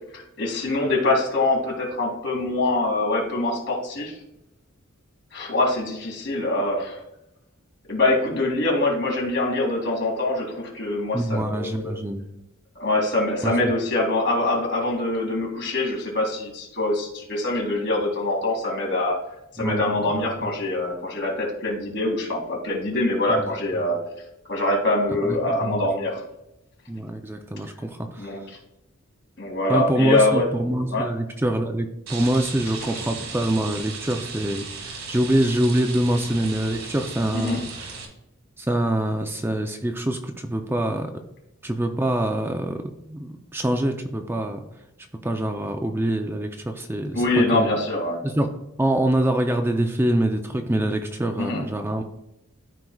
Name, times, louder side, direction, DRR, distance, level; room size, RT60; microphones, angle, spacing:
voice 1, 0.1-4.2 5.3-7.0 7.9-12.0 12.8-19.2 19.6-24.0 24.5-26.2 28.2-28.4 29.4-30.5 30.9-31.1 37.3-37.6 47.1-48.2 51.4-51.6, left 2 dB, 60° left, 0 dB, 2.3 m, -24 dB
voice 2, 11.1-12.2 13.4-13.5 19.6-20.5 23.3-23.9 25.2-25.9 26.9-28.4 29.7-38.0 38.6-41.1 41.6-44.6 45.2-47.8 48.2-48.5 48.8-52.0, right 1 dB, 10° right, 4 dB, 0.5 m, -25 dB
Rain, 32.1-38.0, right 4 dB, 70° right, 1.7 m, -36 dB
13.0 x 4.6 x 2.3 m, 0.85 s
head